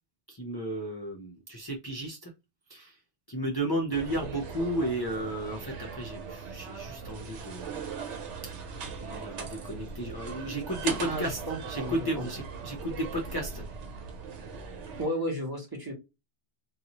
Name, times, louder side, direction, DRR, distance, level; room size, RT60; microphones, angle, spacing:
voice 1, 0.3-2.3 2.7-3.0 3.3-7.8 9.0-13.6, right 1 dB, 30° left, 0 dB, 0.5 m, -33 dB
sound 1, 3.9-15.1, right 5 dB, 90° right, 1.0 m, -39 dB
voice 2, 11.1-12.2 15.0-15.9, equal, 20° right, -1 dB, 1.0 m, -33 dB
2.6 x 2.3 x 2.8 m, 0.25 s
omnidirectional pair, 1.2 m